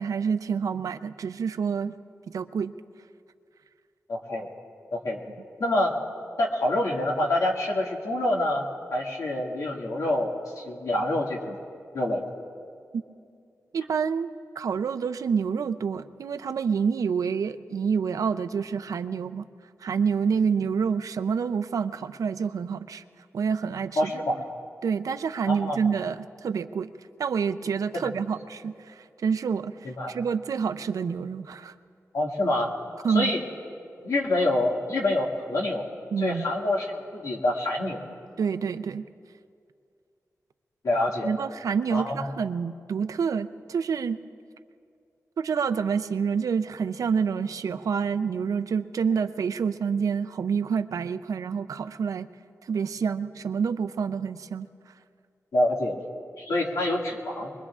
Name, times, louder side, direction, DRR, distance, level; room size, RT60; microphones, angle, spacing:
voice 1, 0.0-1.9 2.3-2.7 13.7-14.3 14.6-19.4 19.8-23.0 23.3-24.4 24.8-26.9 27.2-29.7 30.1-31.7 33.0-33.3 36.1-36.5 38.4-39.1 41.2-44.2 45.4-52.3 52.6-54.7, right 6 dB, 90° right, 12 dB, 0.5 m, -27 dB
voice 2, 4.1-4.5 4.9-5.2 5.6-5.9 6.4-11.6 11.9-12.2 24.0-24.4 25.5-25.8 28.0-28.1 29.8-30.1 32.1-32.7 33.1-33.4 34.0-35.9 36.2-38.0 40.8-41.4 41.9-42.4 55.5-56.0 56.4-57.5, left 1 dB, 80° left, -2 dB, 2.0 m, -26 dB
24.0 x 21.5 x 2.4 m, 2.3 s
wide cardioid pair, 150°, 6 cm